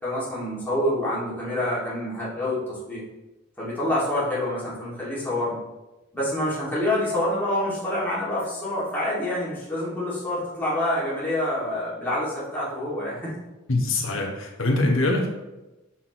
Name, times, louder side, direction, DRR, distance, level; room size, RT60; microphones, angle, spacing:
voice 1, 0.0-3.0 3.6-5.6 6.1-13.4, left 1 dB, 10° left, -9 dB, 2.1 m, -27 dB
voice 2, 13.7-15.3, left 2 dB, 65° left, 1 dB, 1.2 m, -23 dB
5.9 x 5.9 x 3.0 m, 1.0 s
head